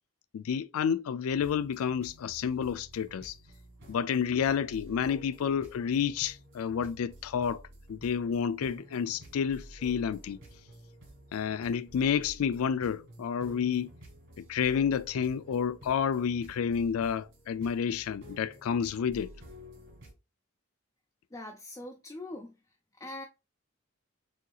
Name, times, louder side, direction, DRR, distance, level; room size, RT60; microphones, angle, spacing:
voice 1, 0.3-3.4 3.9-7.6 7.9-10.4 11.3-13.9 14.4-19.3, left 7 dB, 80° left, 0.4 m, -30 dB
sound 1, 1.3-20.1, right 1 dB, 60° right, 2.6 m, -51 dB
voice 2, 21.3-22.6 23.0-23.2, left 2 dB, 15° left, 0.5 m, -42 dB
6.3 x 2.8 x 2.3 m
head